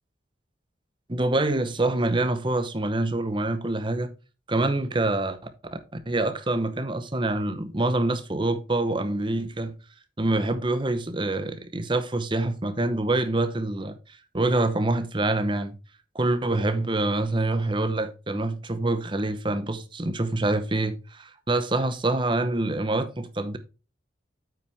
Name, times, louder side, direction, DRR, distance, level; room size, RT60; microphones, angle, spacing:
voice 1, 1.1-4.1 4.5-5.4 6.1-9.7 10.2-14.0 14.3-15.8 16.1-23.6, right 2 dB, 25° right, 0.8 m, -26 dB
8.9 x 5.7 x 3.4 m
head